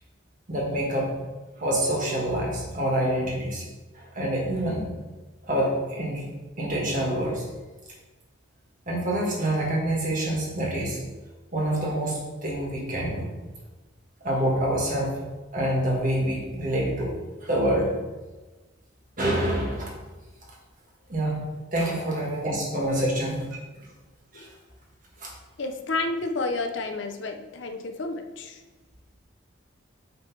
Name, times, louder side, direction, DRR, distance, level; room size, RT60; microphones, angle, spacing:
voice 1, 0.5-1.2 1.6-3.7 3.9-4.9 5.4-7.5 8.9-11.0 11.5-13.3 14.2-15.3 15.5-17.1 17.4-17.9 19.2-19.9 21.1-21.4 21.7-23.5 24.3-24.5 25.2-25.3, right 1 dB, 40° right, -2 dB, 1.5 m, -26 dB
voice 2, 25.6-28.6, left 3 dB, 65° left, 7 dB, 0.5 m, -31 dB
8.0 x 3.2 x 4.5 m, 1.2 s
head